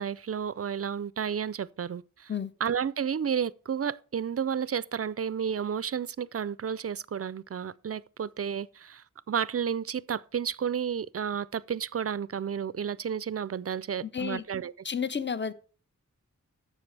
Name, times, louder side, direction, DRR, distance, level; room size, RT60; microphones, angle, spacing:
voice 1, 0.0-2.3 2.6-14.7, right 7 dB, 50° right, 0.4 m, -32 dB
voice 2, 14.0-14.4 14.8-15.5, left 7 dB, 35° left, 0.6 m, -31 dB
10.5 x 7.1 x 3.3 m
wide cardioid pair, 40°, 32 cm